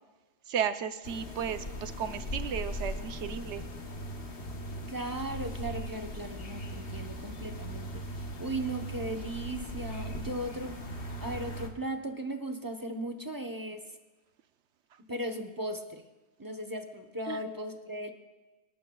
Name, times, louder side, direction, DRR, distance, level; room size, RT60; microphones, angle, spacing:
voice 1, 0.5-3.6 17.3-17.4, right 8 dB, 85° right, 10 dB, 1.0 m, -34 dB
sound 1, 1.0-11.7, equal, 60° left, 1.4 m, -39 dB
voice 2, 4.9-8.0 8.4-10.8 11.2-13.8 15.1-16.0 16.4-18.1, right 1 dB, 20° right, 4 dB, 0.8 m, -37 dB
27.0 x 12.0 x 2.3 m, 1.2 s
omnidirectional pair, 1.2 m